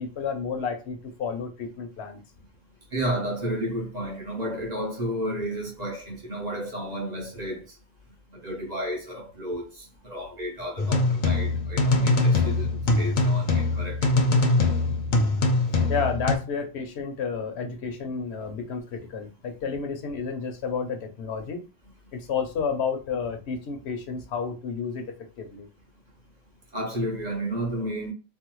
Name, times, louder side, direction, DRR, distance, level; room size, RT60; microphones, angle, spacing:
voice 1, 0.0-2.2 15.9-21.6 22.1-25.1 25.4-25.7, left 5 dB, 75° left, 0.9 m, -31 dB
voice 2, 2.9-7.6 8.3-14.4 26.7-28.1, right 1 dB, 40° right, 0.9 m, -32 dB
sound 1, 10.8-16.4, left 2 dB, 55° left, 0.7 m, -22 dB
3.3 x 2.0 x 3.0 m
omnidirectional pair, 1.1 m